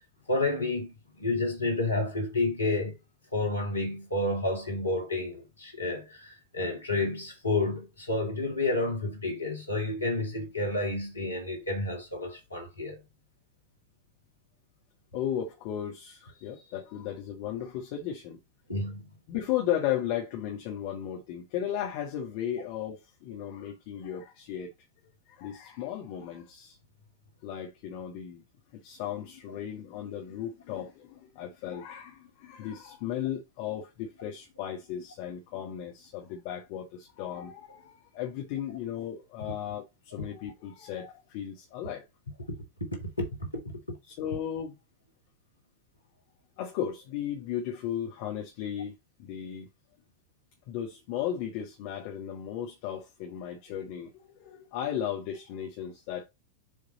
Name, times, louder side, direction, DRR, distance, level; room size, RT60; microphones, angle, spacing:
voice 1, 0.3-2.9 3.3-13.0 18.7-19.1 29.5-29.6 43.2-43.5 43.9-44.0, left 2 dB, 80° left, 2.4 m, -30 dB
voice 2, 15.1-18.4 19.3-24.7 25.3-26.8 27.4-28.4 28.7-42.0 44.0-44.8 46.6-49.7 50.7-56.2, left 10 dB, 45° left, 1.4 m, -35 dB
7.5 x 3.6 x 4.0 m
figure-of-eight pair, 90°, 0 cm